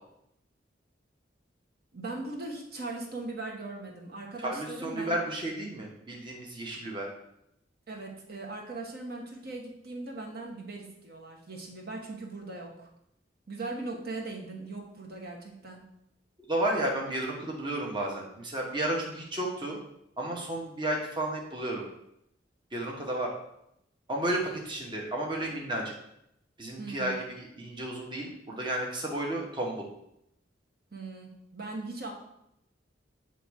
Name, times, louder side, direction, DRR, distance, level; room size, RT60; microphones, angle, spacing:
voice 1, 1.9-5.2 7.9-12.9 13.5-15.8 26.8-27.1 30.9-32.1, right 2 dB, 55° right, 0 dB, 1.0 m, -39 dB
voice 2, 4.4-7.1 16.5-19.8 20.2-21.9 22.7-23.3 24.1-25.9 26.6-29.9, right 1 dB, 25° right, -1 dB, 1.0 m, -32 dB
7.8 x 3.1 x 4.6 m, 0.78 s
head